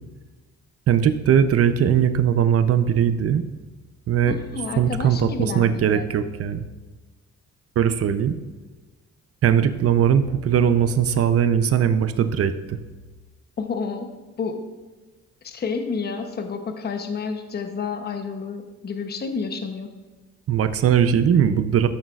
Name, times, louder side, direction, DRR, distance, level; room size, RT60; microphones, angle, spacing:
voice 1, 0.9-3.4 4.1-4.4 4.8-6.7 7.8-8.4 9.4-12.8 20.5-21.9, right 8 dB, 50° right, 11 dB, 0.6 m, -20 dB
voice 2, 4.3-6.1 13.6-14.1 14.4-14.6 15.4-19.9, left 5 dB, 35° left, 6 dB, 0.8 m, -30 dB
13.0 x 6.3 x 2.4 m, 1.3 s
cardioid pair, 90°, 30 cm